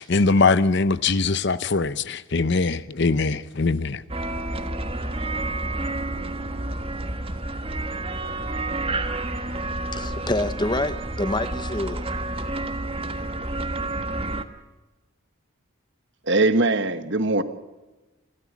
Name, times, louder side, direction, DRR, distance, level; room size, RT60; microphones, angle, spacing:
voice 1, 0.0-4.0, left 3 dB, 55° left, 0.7 m, -22 dB
sound 1, 4.1-14.4, right 2 dB, 25° right, 1.2 m, -29 dB
voice 2, 9.9-12.1, left 2 dB, 20° left, 0.9 m, -27 dB
voice 3, 16.3-17.4, right 2 dB, 55° right, 1.4 m, -21 dB
27.5 x 13.5 x 7.3 m
head